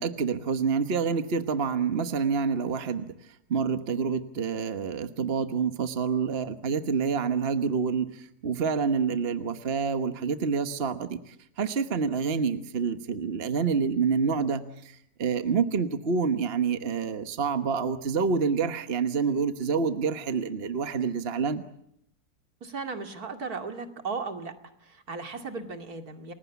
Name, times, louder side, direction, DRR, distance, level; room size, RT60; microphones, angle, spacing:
voice 1, 0.0-21.6, right 5 dB, 40° right, 9 dB, 1.4 m, -27 dB
voice 2, 22.6-24.5 24.8-26.3, right 4 dB, 70° right, 6 dB, 2.8 m, -36 dB
29.5 x 21.0 x 8.2 m, 0.74 s
omnidirectional pair, 1.6 m